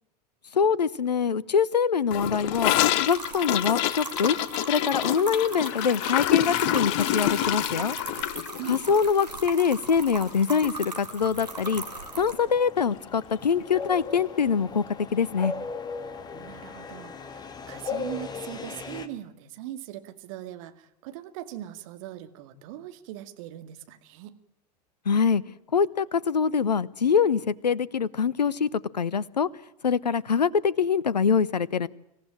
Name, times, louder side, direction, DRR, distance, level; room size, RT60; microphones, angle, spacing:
voice 1, 0.5-2.7 3.0-4.4 4.7-8.0 8.7-11.8 12.2-15.5 25.1-25.4 25.7-29.5 29.8-31.9, left 6 dB, 80° left, 23 dB, 0.8 m, -24 dB
Gurgling / Toilet flush, 2.1-10.4 10.6-10.8 11.1-11.5 11.8-11.9 12.2-12.3 13.2-13.3, left 13 dB, 50° left, 1.2 m, -27 dB
sound 1, 3.1-12.3, right 3 dB, 85° right, 3.2 m, -39 dB
sound 2, 11.4-19.1, left 4 dB, 20° left, 2.1 m, -38 dB
voice 2, 16.3-24.4, right 13 dB, 55° right, 9 dB, 2.3 m, -40 dB
26.0 x 15.5 x 9.0 m, 0.85 s
figure-of-eight pair, 90°, 21 cm